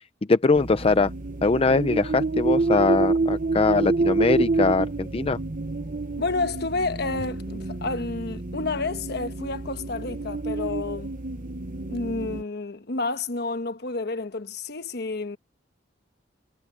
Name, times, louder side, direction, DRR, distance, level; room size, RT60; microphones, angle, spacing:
voice 1, 0.3-1.1 1.4-5.4, left 3 dB, 30° left, 0.5 m, -22 dB
sound 1, 0.5-12.4, right 3 dB, 50° right, 1.0 m, -28 dB
voice 2, 6.2-11.1 11.9-15.4, left 3 dB, 60° left, 1.2 m, -30 dB
head